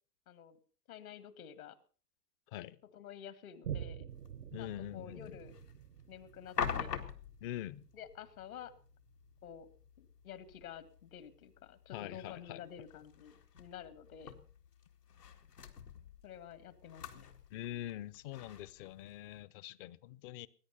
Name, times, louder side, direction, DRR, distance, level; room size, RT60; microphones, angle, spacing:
voice 1, 0.3-0.6 0.9-1.8 2.9-4.1 4.6-5.6 6.1-7.0 7.9-8.7 9.4-9.7 10.0-14.3 16.2-17.3, left 8 dB, 60° left, 2.0 m, -50 dB
Boom, 3.6-10.6 11.1-11.2, right 9 dB, 75° right, 1.0 m, -48 dB
sound 1, 4.1-19.4, left 7 dB, 80° left, 2.1 m, -47 dB
voice 2, 4.5-5.3 7.4-7.8 11.9-12.6 17.5-20.5, left 13 dB, 35° left, 0.7 m, -44 dB
20.5 x 9.8 x 5.5 m
figure-of-eight pair, 105°, 47 cm